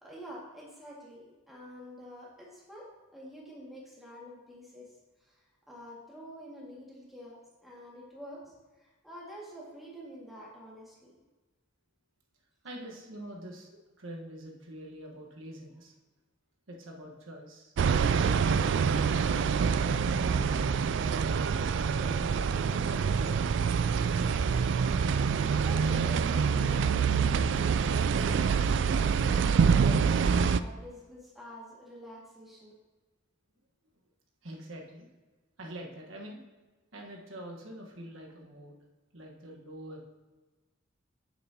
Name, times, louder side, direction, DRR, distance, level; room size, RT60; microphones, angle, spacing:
voice 1, 0.0-4.9 5.2-5.4 5.7-11.2 25.6-27.2 27.5-28.7 29.3-32.7, equal, ahead, -5 dB, 2.1 m, -47 dB
voice 2, 12.6-15.9 16.7-17.7 18.2-21.1 21.9-24.1 34.4-35.1 35.6-36.4 36.9-38.8 39.1-40.0, right 1 dB, 90° right, -1 dB, 1.4 m, -45 dB
sound 1, 17.8-30.6, right 6 dB, 65° right, 0.3 m, -26 dB
9.4 x 7.1 x 2.9 m, 1.2 s
head